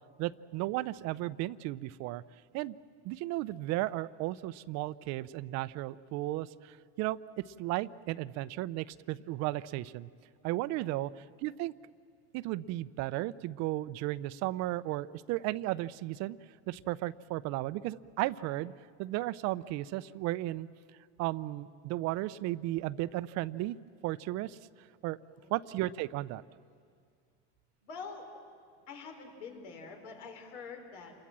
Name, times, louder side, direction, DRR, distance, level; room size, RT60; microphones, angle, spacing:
voice 1, 0.2-2.2 2.5-2.8 3.0-7.2 7.6-10.1 10.4-11.7 12.3-16.4 16.7-18.7 19.0-20.7 21.2-23.8 24.0-24.6 25.0-25.2 25.5-26.4, right 17 dB, 55° right, 17 dB, 0.6 m, -34 dB
voice 2, 10.7-11.1 25.3-25.5 27.8-28.3 28.9-31.1, left 5 dB, 80° left, 4 dB, 4.8 m, -46 dB
27.5 x 22.0 x 7.5 m, 2.1 s
supercardioid pair, 115°, 33 cm